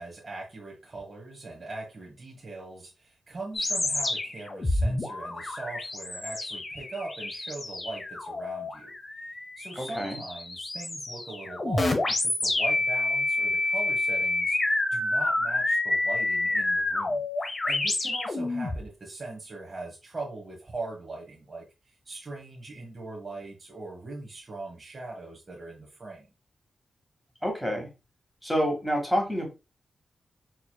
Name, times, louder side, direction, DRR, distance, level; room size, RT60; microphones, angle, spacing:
voice 1, 0.0-8.9 9.6-26.3, right 2 dB, 40° right, 1.0 m, -40 dB
sound 1, 3.5-18.8, left 2 dB, 35° left, 0.8 m, -28 dB
voice 2, 9.7-10.2 27.4-27.9 28.4-29.5, equal, 5° left, 1.6 m, -28 dB
4.5 x 3.0 x 2.2 m
wide cardioid pair, 90°, 0 cm